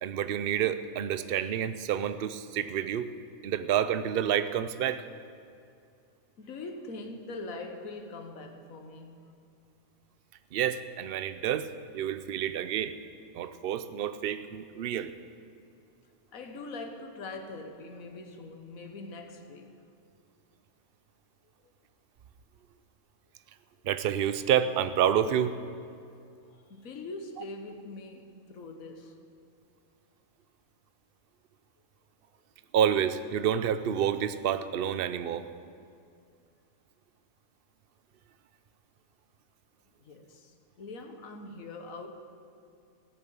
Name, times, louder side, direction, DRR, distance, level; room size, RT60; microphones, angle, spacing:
voice 1, 0.0-3.1 3.4-5.0 10.5-11.7 11.9-13.0 13.3-15.1 23.8-25.6 32.7-35.4, right 9 dB, 55° right, 12 dB, 0.7 m, -28 dB
voice 2, 6.4-9.2 16.3-19.8 21.6-21.7 26.0-26.1 26.5-29.2 40.0-42.1, left 3 dB, 70° left, 5 dB, 1.6 m, -43 dB
16.5 x 6.9 x 9.4 m, 2.4 s
omnidirectional pair, 1.5 m